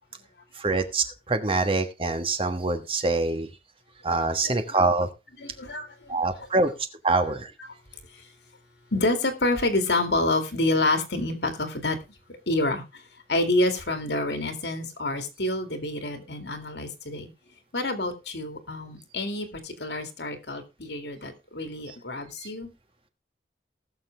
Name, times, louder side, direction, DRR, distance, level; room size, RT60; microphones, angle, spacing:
voice 1, 0.6-3.5 4.0-5.1 6.1-6.7 7.0-7.5 21.9-22.0 22.4-22.5, right 3 dB, 30° right, 1.3 m, -25 dB
voice 2, 4.4-4.8 5.4-6.2 6.5-6.6 7.1-7.2 8.9-12.0 12.3-12.8 13.3-17.3 17.7-22.7, left 2 dB, 75° left, 2.3 m, -28 dB
19.0 x 6.7 x 3.4 m
head